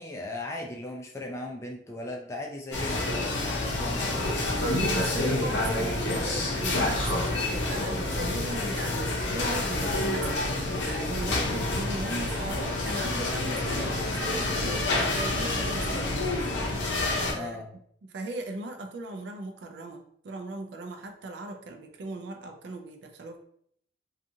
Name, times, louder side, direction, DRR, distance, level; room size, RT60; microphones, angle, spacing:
voice 1, 0.0-4.3 17.3-17.7, left 2 dB, 15° left, 0 dB, 0.3 m, -38 dB
sound 1, 2.7-17.3, left 2 dB, 80° left, 0.6 m, -28 dB
voice 2, 4.7-16.1 17.3-17.6 18.0-23.4, right 2 dB, 65° right, 4 dB, 0.4 m, -38 dB
2.6 x 2.4 x 2.6 m, 0.66 s
head